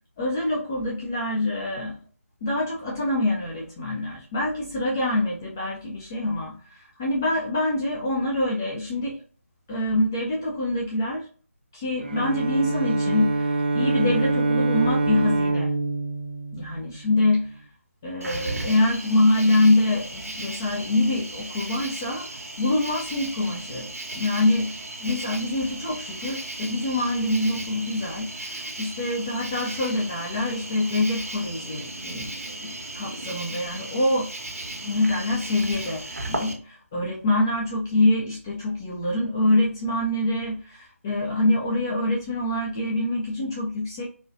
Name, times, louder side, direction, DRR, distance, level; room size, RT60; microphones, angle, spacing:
voice 1, 0.2-2.0 2.4-9.2 9.7-11.3 11.7-15.7 16.5-17.5 18.0-22.3 22.6-34.3 34.8-44.1, left 2 dB, 15° left, -3 dB, 0.3 m, -25 dB
Bowed string instrument, 12.0-17.2, right 2 dB, 40° right, 0.6 m, -25 dB
Cricket, 18.2-36.5, right 2 dB, 80° right, 1.2 m, -36 dB
4.1 x 2.3 x 2.5 m, 0.41 s
figure-of-eight pair, 160°, 8 cm